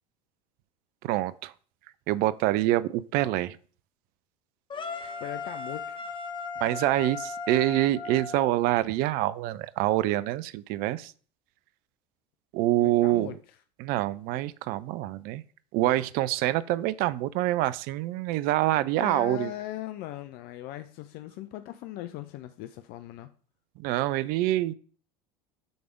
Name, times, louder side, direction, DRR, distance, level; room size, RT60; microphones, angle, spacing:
voice 1, 1.0-1.5 2.1-3.6 6.6-11.1 12.5-13.4 13.8-15.4 15.7-19.5 23.8-24.7, right 15 dB, 45° right, 16 dB, 0.4 m, -26 dB
sound 1, 4.7-8.8, left 4 dB, 25° left, 0.9 m, -37 dB
voice 2, 5.0-6.0 12.8-13.4 19.0-23.3, left 14 dB, 45° left, 10 dB, 0.5 m, -39 dB
7.8 x 3.4 x 5.0 m, 0.43 s
figure-of-eight pair, 75°, 21 cm